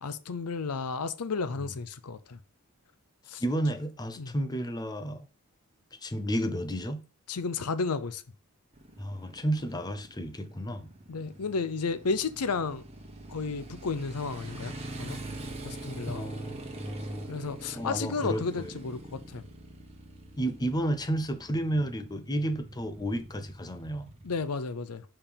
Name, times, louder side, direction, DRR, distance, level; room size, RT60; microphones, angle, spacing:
voice 1, 0.0-2.4 3.3-3.4 4.2-4.3 7.3-8.2 11.1-12.8 13.3-14.7 15.0-15.2 15.6-16.2 17.3-19.4 24.2-25.0, left 4 dB, 90° left, 0.6 m, -32 dB
voice 2, 3.4-5.3 5.9-7.0 9.0-10.9 16.1-17.3 17.7-18.7 20.4-24.1, right 1 dB, 20° left, 0.6 m, -32 dB
Motorcycle, 8.7-24.5, right 2 dB, 30° right, 1.2 m, -44 dB
5.3 x 4.8 x 5.1 m
head